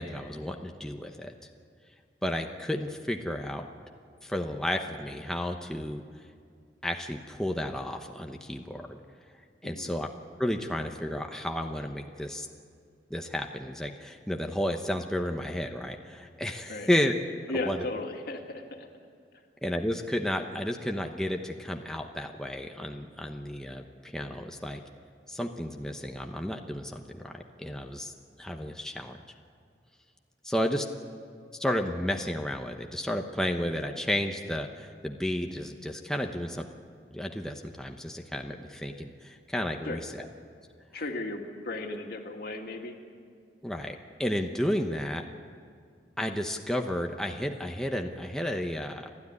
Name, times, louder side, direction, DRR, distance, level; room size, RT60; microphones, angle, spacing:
voice 1, 0.0-1.3 2.2-3.7 4.2-6.0 6.8-9.0 9.6-10.1 10.4-12.5 13.1-17.1 17.6-17.8 19.6-24.8 25.3-28.1 28.4-29.2 30.4-30.9 31.6-36.7 37.1-40.0 43.6-45.3 46.2-49.1, left 1 dB, 5° left, 3 dB, 0.9 m, -32 dB
voice 2, 9.6-9.9 16.7-16.9 17.5-18.9 36.2-36.6 39.9-40.0 40.9-43.0, left 2 dB, 60° left, 3 dB, 2.3 m, -36 dB
30.0 x 13.0 x 9.7 m, 2.2 s
head